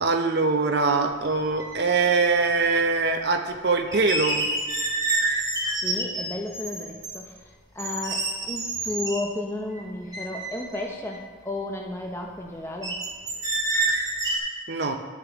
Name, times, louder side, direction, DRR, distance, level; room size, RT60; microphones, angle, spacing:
voice 1, 0.0-4.5 14.7-15.0, right 4 dB, 55° right, 5 dB, 0.6 m, -23 dB
sound 1, 1.3-1.4 1.6-2.5 3.9-7.2 7.8-9.2 9.8-9.9 10.1-11.2 12.8-14.4, right 2 dB, 20° right, 1.0 m, -28 dB
voice 2, 5.6-7.4 7.7-13.0, left 1 dB, 10° left, 0 dB, 0.7 m, -33 dB
9.9 x 7.0 x 3.5 m, 1.5 s
head